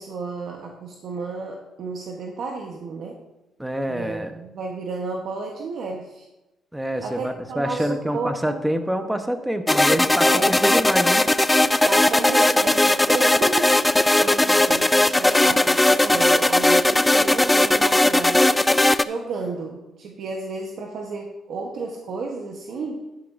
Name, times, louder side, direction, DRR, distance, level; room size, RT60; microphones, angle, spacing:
voice 1, 0.0-3.2 3.9-6.3 7.0-8.6 10.2-10.6 11.8-18.6 19.0-23.1, right 4 dB, 65° right, 1 dB, 1.1 m, -32 dB
voice 2, 3.6-4.3 6.7-11.2, equal, 5° right, 7 dB, 1.0 m, -26 dB
sound 1, 9.7-19.0, left 1 dB, 10° left, 0.3 m, -18 dB
11.0 x 10.5 x 2.6 m, 0.98 s
cardioid pair, 90°, 0 cm